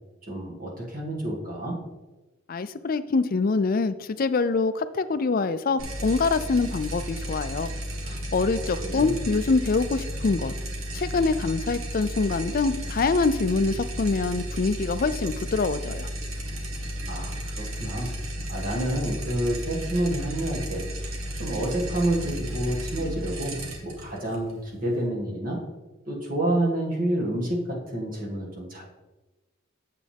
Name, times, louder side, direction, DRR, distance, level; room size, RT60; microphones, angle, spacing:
voice 1, 0.3-1.8 8.8-9.2 17.1-18.1 18.5-21.1 21.4-23.6 23.8-25.6 26.1-28.8, right 1 dB, 40° right, -2 dB, 1.9 m, -29 dB
voice 2, 2.5-7.7 8.1-10.5 10.9-16.1, left 4 dB, 45° left, 12 dB, 0.4 m, -25 dB
sound 1, 5.8-25.1, equal, 80° right, 1.5 m, -34 dB
8.5 x 7.5 x 3.5 m, 1.1 s
head